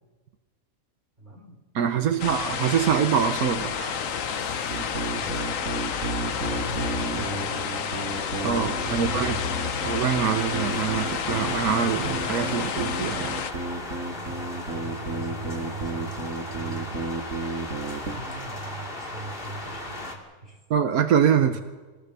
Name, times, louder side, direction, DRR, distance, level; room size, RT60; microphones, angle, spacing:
voice 1, 1.2-1.6 1.9-2.4 5.0-7.9 8.6-9.7 14.1-20.6 21.4-21.6, right 3 dB, 30° right, 0 dB, 4.9 m, -41 dB
voice 2, 1.7-4.0 8.4-9.4 9.8-13.4 20.7-21.6, right 8 dB, 85° right, 7 dB, 1.5 m, -24 dB
sound 1, 2.2-13.5, left 8 dB, 70° left, 1.2 m, -30 dB
sound 2, 3.5-20.2, left 1 dB, 40° left, 3.0 m, -37 dB
sound 3, 4.7-18.2, right 3 dB, 65° right, 2.7 m, -33 dB
26.0 x 18.0 x 6.8 m, 1.3 s
omnidirectional pair, 1.5 m